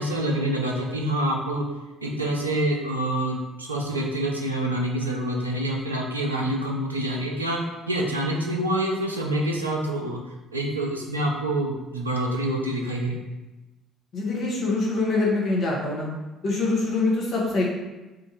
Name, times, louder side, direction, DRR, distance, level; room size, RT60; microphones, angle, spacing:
voice 1, 0.0-1.6 2.0-7.6 7.9-10.2 10.5-13.2, right 1 dB, 85° right, -1 dB, 0.4 m, -26 dB
voice 2, 14.1-16.1 16.4-17.6, left 3 dB, 50° left, -4 dB, 0.9 m, -24 dB
2.9 x 2.5 x 3.9 m, 1.1 s
figure-of-eight pair, 50°, 0 cm